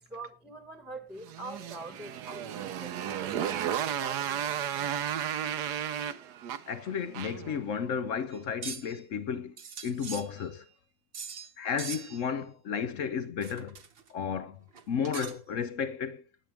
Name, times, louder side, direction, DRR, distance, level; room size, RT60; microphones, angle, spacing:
voice 1, 0.1-5.0, right 2 dB, ahead, 1.2 m, -45 dB
Motorcycle, 1.2-7.6, right 9 dB, 65° right, 1.3 m, -33 dB
voice 2, 6.7-9.6 9.8-10.6 11.6-13.8 14.1-16.2, left 7 dB, 60° left, 0.8 m, -33 dB
sound 1, 8.3-9.0 9.6-10.7 11.1-11.5 11.8-12.3 13.4-14.1 14.7-15.6, right 6 dB, 45° right, 0.8 m, -42 dB
19.0 x 7.5 x 3.4 m
omnidirectional pair, 2.0 m